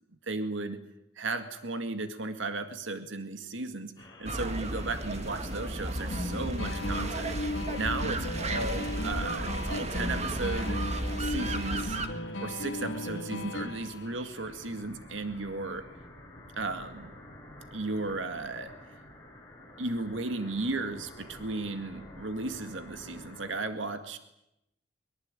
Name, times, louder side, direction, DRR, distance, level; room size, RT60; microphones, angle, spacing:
voice 1, 0.3-0.8 1.2-7.3 7.7-10.8 11.2-12.0 12.4-15.9 16.6-17.1 17.7-18.7 19.8-24.2, right 3 dB, 85° right, 8 dB, 2.0 m, -35 dB
sound 1, 4.0-23.6, left 1 dB, 20° left, 6.6 m, -51 dB
sound 2, 4.3-12.1, right 1 dB, 35° right, 2.0 m, -34 dB
sound 3, 6.1-14.1, left 1 dB, 85° left, 2.7 m, -36 dB
23.0 x 22.5 x 9.0 m, 0.84 s
head